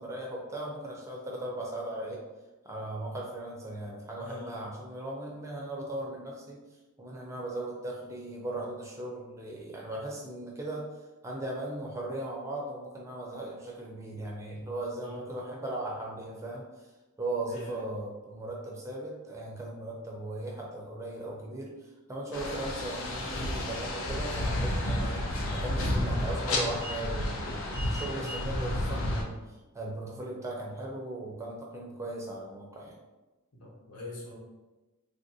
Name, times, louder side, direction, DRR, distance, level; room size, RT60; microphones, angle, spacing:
voice 1, 0.0-2.2 2.6-6.6 7.0-10.9 11.2-16.6 17.2-29.4 29.7-32.9, right 1 dB, 15° right, -2 dB, 0.4 m, -38 dB
voice 2, 17.5-17.8 33.6-34.4, left 1 dB, 85° left, -3 dB, 1.0 m, -43 dB
sound 1, 22.3-29.2, left 1 dB, 60° left, 0.5 m, -31 dB
3.3 x 2.5 x 2.6 m, 1.1 s
head